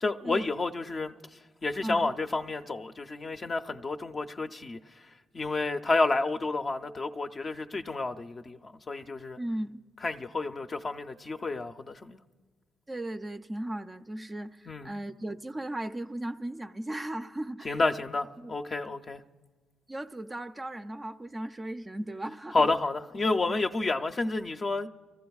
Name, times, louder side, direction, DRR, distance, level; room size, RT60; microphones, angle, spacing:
voice 1, 0.0-1.1 1.6-4.8 5.3-9.4 10.0-12.2 14.7-14.9 17.6-19.2 22.5-24.9, left 3 dB, 35° left, 0.5 m, -30 dB
voice 2, 9.4-9.8 12.9-17.8 18.4-18.5 19.9-22.7 23.5-23.6, right 1 dB, 20° right, 0.4 m, -36 dB
29.5 x 14.5 x 2.3 m
cardioid pair, 90°, 0 cm